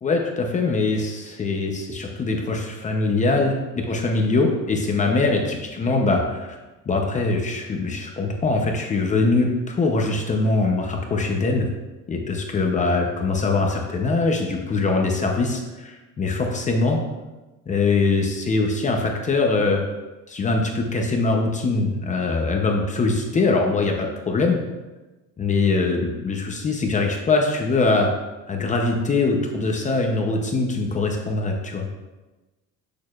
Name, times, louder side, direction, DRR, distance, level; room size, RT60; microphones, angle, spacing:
voice 1, 0.0-6.6 6.9-11.7 12.1-17.0 17.7-19.8 20.3-24.6 25.4-28.1 28.5-32.0, left 3 dB, 25° left, 2 dB, 0.7 m, -22 dB
8.2 x 6.6 x 2.4 m, 1.1 s
cardioid pair, 160°, 32 cm